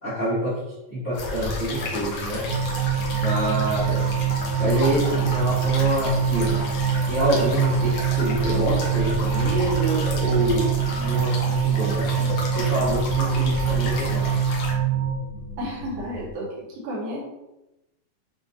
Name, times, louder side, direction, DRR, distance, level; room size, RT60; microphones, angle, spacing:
voice 1, 0.0-2.5 3.1-4.1 4.6-6.7 7.1-14.3, right 1 dB, 45° left, -12 dB, 0.9 m, -26 dB
sound 1, 1.1-14.7, left 4 dB, 90° left, 1.3 m, -32 dB
sound 2, 1.4-16.3, left 1 dB, 70° left, 2.6 m, -38 dB
sound 3, 2.5-15.2, right 8 dB, 70° right, 2.1 m, -24 dB
voice 2, 15.6-17.2, equal, 85° right, -4 dB, 2.9 m, -32 dB
7.0 x 2.6 x 2.7 m, 0.95 s
omnidirectional pair, 4.0 m